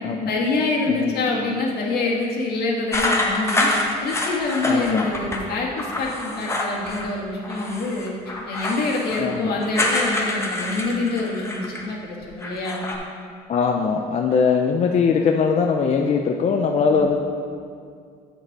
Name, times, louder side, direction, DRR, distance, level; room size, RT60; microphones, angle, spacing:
voice 1, 0.3-3.7 4.0-8.1 8.5-12.8 16.9-17.0, left 3 dB, 70° left, -2 dB, 1.7 m, -26 dB
sound 1, 2.9-5.4 5.8-7.1 7.4-11.9 12.2-12.9, left 2 dB, 15° left, 1.1 m, -26 dB
voice 2, 4.7-5.1 9.2-9.6 13.5-17.2, left 5 dB, 40° left, 3 dB, 0.5 m, -21 dB
8.1 x 6.5 x 4.6 m, 2.3 s
cardioid pair, 110°, 17 cm